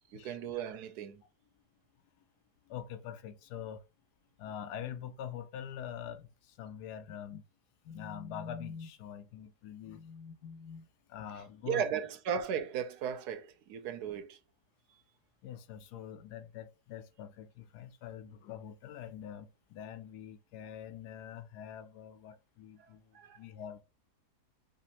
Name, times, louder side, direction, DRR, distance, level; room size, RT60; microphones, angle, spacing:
voice 1, 0.1-1.2 11.7-14.4 23.1-23.4, right 8 dB, 80° right, 1.1 m, -36 dB
voice 2, 2.6-3.8 4.4-7.4 7.8-11.8 15.4-23.8, left 9 dB, 80° left, 1.1 m, -45 dB
5.1 x 2.5 x 2.8 m
omnidirectional pair, 1.7 m